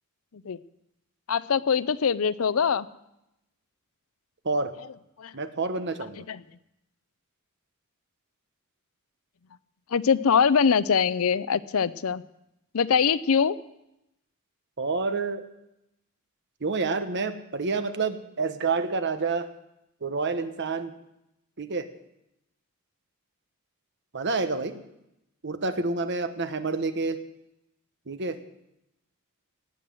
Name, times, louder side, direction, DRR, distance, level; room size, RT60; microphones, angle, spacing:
voice 1, 1.3-2.9 5.2-5.3 6.1-6.4 9.9-12.2 12.7-13.6, left 6 dB, 70° left, 17 dB, 0.5 m, -23 dB
voice 2, 5.3-6.2 14.8-15.4 16.6-19.5 20.0-20.9 21.6-21.9 24.1-24.8 25.4-27.2 28.1-28.4, right 4 dB, 55° right, 10 dB, 1.1 m, -28 dB
18.0 x 7.9 x 7.7 m, 0.86 s
head